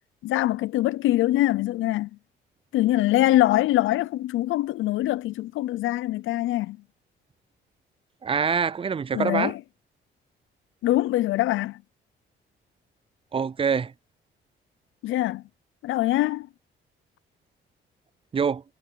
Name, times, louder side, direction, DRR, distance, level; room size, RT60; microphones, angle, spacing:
voice 1, 0.2-2.1 2.7-6.8 9.1-9.6 10.8-11.8 15.0-15.4 15.8-16.5, left 15 dB, 80° left, 0.6 m, -23 dB
voice 2, 8.2-9.5 13.3-13.9 18.3-18.6, right 6 dB, 25° right, 0.5 m, -25 dB
cardioid pair, 90°, 20 cm